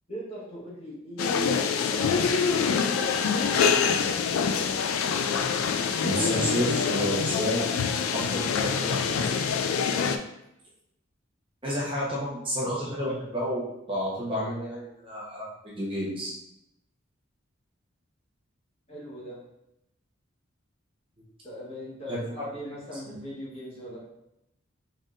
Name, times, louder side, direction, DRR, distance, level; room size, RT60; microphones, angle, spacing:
voice 1, 0.1-4.2 18.9-19.4 21.4-24.0, equal, 30° left, -6 dB, 1.2 m, -40 dB
sound 1, 1.2-10.2, left 6 dB, 85° left, 0.3 m, -25 dB
voice 2, 5.6-7.8 8.1-9.4 11.6-16.3 22.1-22.2 23.1-23.2, equal, 25° right, -6 dB, 0.9 m, -31 dB
3.9 x 3.4 x 2.5 m, 0.84 s
head